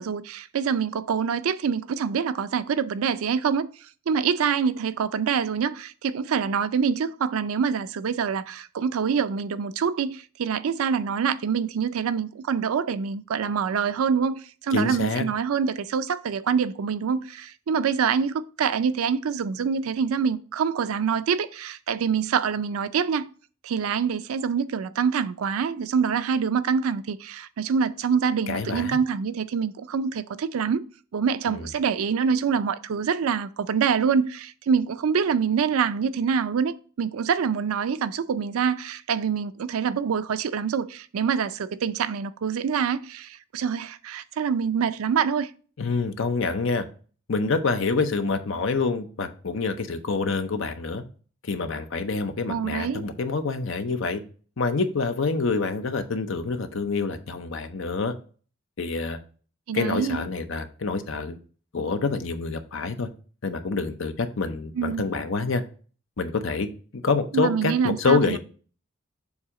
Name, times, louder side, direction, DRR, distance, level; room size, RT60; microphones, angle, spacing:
voice 1, 0.0-3.7 4.1-23.3 23.6-30.8 31.1-45.5 52.5-53.0 59.7-60.2 64.8-65.1 67.3-68.4, right 6 dB, 85° right, 0.4 m, -25 dB
voice 2, 14.7-15.2 28.5-29.0 31.5-31.7 45.8-46.9 47.3-51.0 51.4-54.2 54.6-58.1 58.8-59.2 59.7-61.4 61.7-63.1 63.4-65.6 66.2-66.7 67.0-68.4, left 4 dB, 65° left, 0.7 m, -26 dB
7.1 x 2.7 x 4.8 m
head